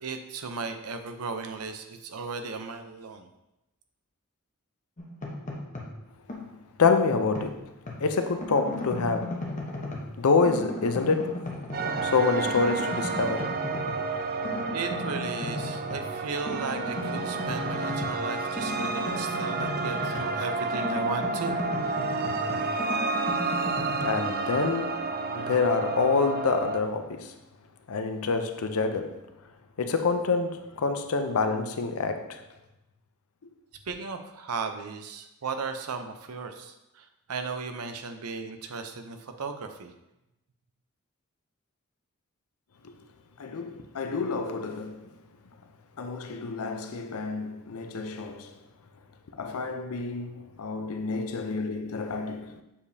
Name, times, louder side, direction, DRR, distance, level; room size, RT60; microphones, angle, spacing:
voice 1, 0.0-3.3 14.7-21.6 33.9-36.7 37.3-39.9, right 4 dB, 80° right, 0.7 m, -36 dB
sound 1, 5.0-6.0 6.3-8.0 8.4-10.2 10.4-12.2 12.5-14.0 14.4-16.1 16.4-20.4 20.7-24.1, left 2 dB, 35° left, 1.0 m, -36 dB
voice 2, 6.8-7.7 8.0-9.5 10.2-11.5 12.0-13.6 24.0-27.3 27.9-29.3 29.8-32.4 42.8-42.9 43.4-45.1 46.0-48.5 49.3-52.6, left 4 dB, 70° left, 0.6 m, -27 dB
sound 2, 11.7-26.8, right 3 dB, 40° right, 0.4 m, -30 dB
7.1 x 5.0 x 2.7 m
head